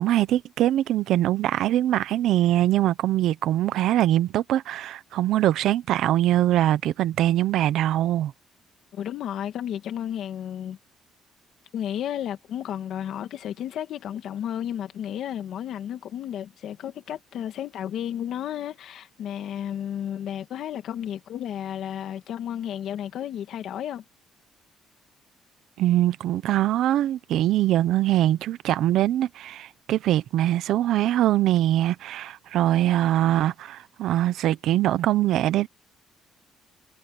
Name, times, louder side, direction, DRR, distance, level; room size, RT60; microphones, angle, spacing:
voice 1, 0.0-8.3 25.8-35.7, right 13 dB, 70° right, 0.8 m, -22 dB
voice 2, 8.9-10.8 11.7-24.0, left 10 dB, 55° left, 2.1 m, -32 dB
cardioid pair, 170°, 0 cm